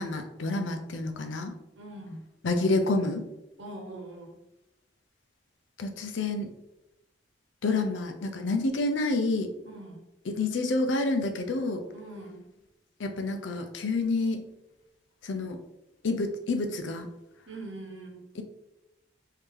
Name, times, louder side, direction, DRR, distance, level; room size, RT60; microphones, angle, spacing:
voice 1, 0.0-1.5 2.4-3.2 5.8-6.5 7.6-9.5 10.3-11.8 13.0-14.4 15.2-15.6 16.0-17.1 18.4-18.5, left 2 dB, 80° left, 6 dB, 0.5 m, -28 dB
voice 2, 1.8-2.2 3.6-4.4 9.6-10.0 11.9-12.5 17.5-18.2, right 2 dB, 90° right, 0 dB, 1.0 m, -42 dB
3.3 x 2.8 x 3.5 m, 0.91 s
head